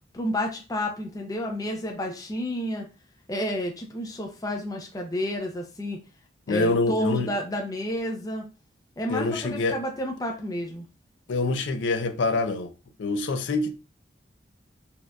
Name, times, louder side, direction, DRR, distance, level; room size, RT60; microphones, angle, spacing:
voice 1, 0.1-2.9 3.3-6.0 6.5-8.4 9.0-10.9, equal, 20° left, 0.5 m, -30 dB
voice 2, 6.5-7.3 9.1-9.8 11.3-12.7 13.0-13.7, left 3 dB, 80° left, 0.5 m, -25 dB
4.2 x 2.5 x 2.3 m
head